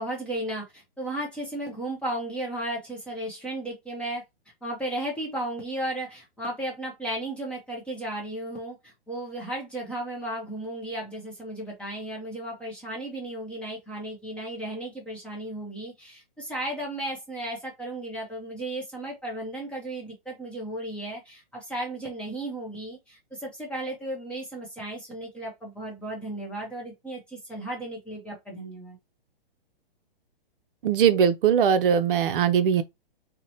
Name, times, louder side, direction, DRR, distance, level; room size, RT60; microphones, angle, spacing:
voice 1, 0.0-4.2 4.6-29.0, right 1 dB, 5° left, 0.4 m, -34 dB
voice 2, 30.8-32.8, right 8 dB, 60° right, 0.5 m, -20 dB
2.9 x 2.1 x 2.7 m
hypercardioid pair, 140°, 30 cm